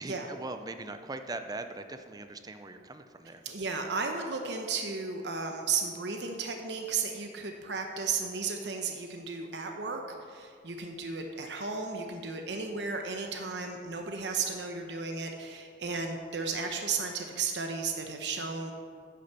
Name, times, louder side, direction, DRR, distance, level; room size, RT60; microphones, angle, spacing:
voice 1, 0.0-3.4, right 2 dB, 20° right, 8 dB, 0.6 m, -40 dB
voice 2, 3.4-18.7, right 4 dB, 70° right, 3 dB, 0.9 m, -34 dB
10.0 x 6.3 x 7.0 m, 2.2 s
head